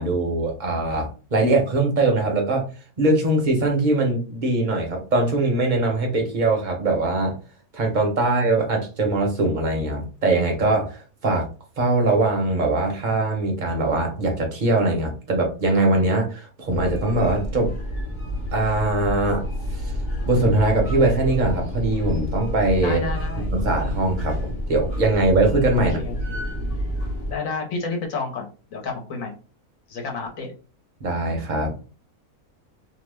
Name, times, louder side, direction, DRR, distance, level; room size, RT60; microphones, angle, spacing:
voice 1, 0.0-2.6 3.0-7.3 7.7-11.5 11.8-17.7 18.5-19.4 19.8-19.9 20.3-23.0 23.4-26.0 31.0-31.7, right 2 dB, 45° right, 2 dB, 0.7 m, -22 dB
sound 1, 16.7-27.3, equal, 40° left, 0.8 m, -28 dB
voice 2, 22.8-23.5 26.0-26.5 27.3-29.3 29.9-30.5, left 4 dB, 65° left, 1 dB, 1.2 m, -31 dB
2.8 x 2.1 x 3.3 m, 0.35 s
omnidirectional pair, 1.6 m